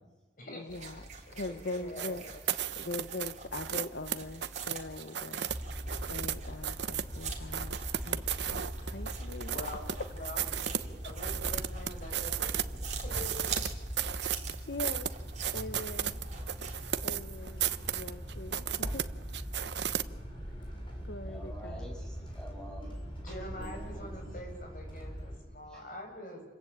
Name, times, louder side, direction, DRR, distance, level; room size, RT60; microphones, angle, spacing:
voice 1, 0.5-2.2 2.8-5.5 6.1-10.1 14.2-14.3 14.7-15.1 15.5-16.2 16.6-16.7 17.0-19.0 21.0-21.9, left 2 dB, 70° left, 10 dB, 1.0 m, -42 dB
sound 1, 0.7-16.9, right 5 dB, 40° right, 3.6 m, -45 dB
voice 2, 1.4-2.1 9.5-9.8 10.1-12.6 13.0-13.5 23.2-26.4, left 1 dB, 50° left, 1 dB, 8.0 m, -45 dB
sound 2, 2.0-6.4 6.6-7.1 7.5-10.0 10.3-12.6 12.9-20.0, right 10 dB, 80° right, 0.9 m, -34 dB
sound 3, 5.5-25.4, equal, 30° left, 6.7 m, -41 dB
voice 3, 21.2-23.0 23.3-24.3 25.7-25.9, equal, 5° left, -2 dB, 7.9 m, -48 dB
28.5 x 22.0 x 8.7 m, 1.2 s
head